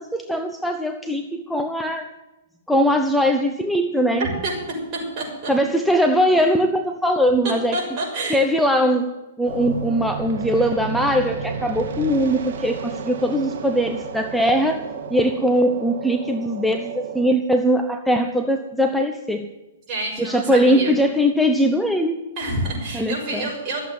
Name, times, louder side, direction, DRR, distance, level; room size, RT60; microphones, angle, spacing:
voice 1, 0.0-2.1 2.7-4.3 5.5-7.8 8.3-9.1 9.4-14.8 15.1-19.5 20.2-22.2 22.9-23.5, equal, ahead, 5 dB, 0.7 m, -20 dB
voice 2, 4.2-4.5 4.9-5.5 7.4-8.4 19.9-20.9 22.4-23.8, right 2 dB, 35° right, -2 dB, 6.3 m, -28 dB
sound 1, 9.5-17.3, right 5 dB, 65° right, 1.6 m, -32 dB
13.5 x 8.1 x 9.2 m, 1.1 s
hypercardioid pair, 140°, 0 cm